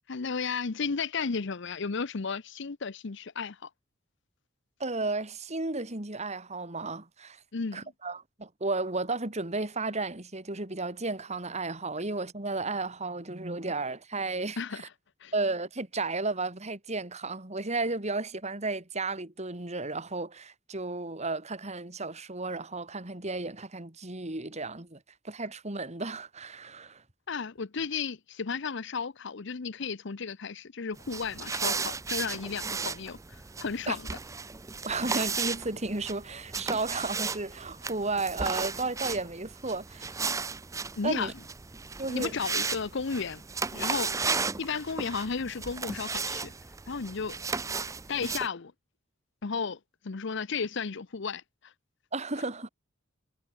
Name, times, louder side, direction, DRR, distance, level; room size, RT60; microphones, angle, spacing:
voice 1, 0.1-3.7 7.5-7.9 14.6-14.9 15.2-15.3 27.3-34.1 41.0-41.3 42.1-43.4 43.7-44.1 44.6-46.5 46.9-47.4 48.1-48.7 49.4-51.7, left 5 dB, 60° left, 0.7 m, -34 dB
voice 2, 4.8-7.4 7.7-14.8 15.3-25.0 25.2-27.0 33.9-34.0 34.8-40.1 41.0-41.3 42.0-42.4 52.1-52.7, right 3 dB, 35° right, 2.9 m, -33 dB
sound 1, 31.0-48.5, right 5 dB, 15° right, 0.5 m, -35 dB
head